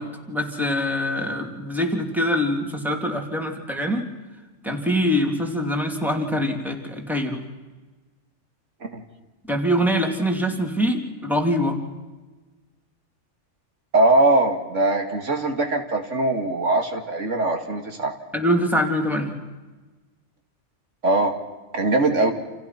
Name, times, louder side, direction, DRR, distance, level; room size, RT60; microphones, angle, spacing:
voice 1, 0.0-4.1 4.6-7.4 9.5-11.8 18.3-19.4, equal, ahead, 2 dB, 3.3 m, -24 dB
voice 2, 13.9-18.1 21.0-21.4 21.7-22.3, right 2 dB, 90° right, 4 dB, 2.7 m, -21 dB
29.5 x 28.5 x 6.0 m, 1.2 s
omnidirectional pair, 1.2 m